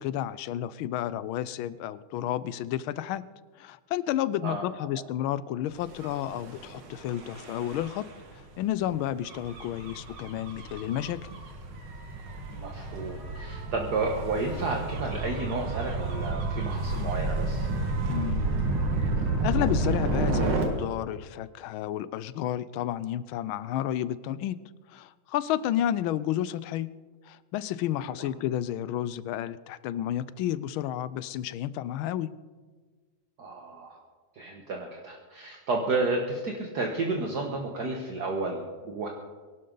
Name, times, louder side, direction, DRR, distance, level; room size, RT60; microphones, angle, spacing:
voice 1, 0.0-3.3 3.6-8.1 8.6-11.3 18.1-18.5 19.4-24.6 24.9-26.9 27.3-32.3, left 12 dB, 80° left, 17 dB, 1.4 m, -31 dB
Gull seagull / Waves surf / Siren, 5.9-20.6, right 2 dB, 80° right, 2.7 m, -31 dB
voice 2, 12.5-17.7 33.4-34.0 34.3-39.1, right 3 dB, 50° right, 1 dB, 1.8 m, -31 dB
23.0 x 12.0 x 3.9 m, 1.4 s
omnidirectional pair, 2.3 m